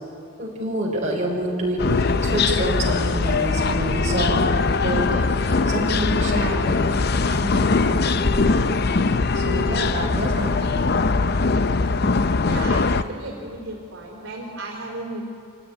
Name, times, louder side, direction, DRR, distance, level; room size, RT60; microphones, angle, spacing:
voice 1, 0.4-7.0 7.3-8.7 9.3-10.8 13.0-13.1, right 1 dB, 35° right, -3 dB, 5.5 m, -27 dB
sound 1, 1.8-13.0, left 3 dB, 50° left, 0.6 m, -21 dB
voice 2, 12.4-15.2, right 2 dB, 60° right, -1 dB, 4.3 m, -34 dB
26.5 x 17.5 x 9.8 m, 2.6 s
head